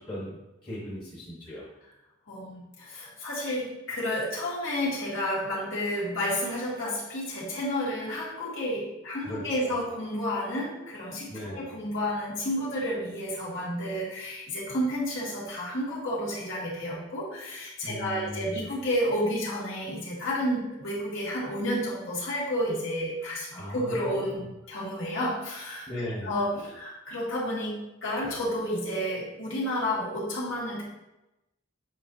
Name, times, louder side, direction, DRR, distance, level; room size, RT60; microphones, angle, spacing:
voice 1, 0.0-1.7 9.2-9.8 11.3-11.7 17.8-18.7 23.5-24.4 25.9-26.3, equal, 25° left, -8 dB, 1.2 m, -38 dB
voice 2, 2.3-25.9 26.2-30.8, equal, 75° left, -7 dB, 2.3 m, -31 dB
8.2 x 4.3 x 2.7 m, 0.95 s
head